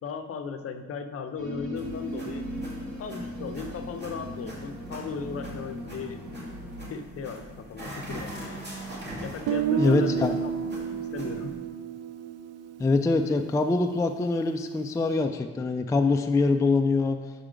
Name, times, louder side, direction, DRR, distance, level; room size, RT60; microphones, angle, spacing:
voice 1, 0.0-2.4 2.9-6.2 6.9-8.3 9.2-10.5 11.1-11.6, left 5 dB, 50° left, 8 dB, 0.6 m, -36 dB
sound 1, 1.4-6.9, equal, 85° right, 1.1 m, -38 dB
sound 2, 1.8-11.5, right 1 dB, 35° right, 2.2 m, -42 dB
Guitar, 9.5-13.4, right 8 dB, 60° right, 0.4 m, -30 dB
voice 2, 9.8-10.4 12.8-17.2, left 3 dB, 10° left, 5 dB, 0.3 m, -24 dB
5.6 x 4.9 x 5.0 m, 1.3 s
cardioid pair, 90°, 30 cm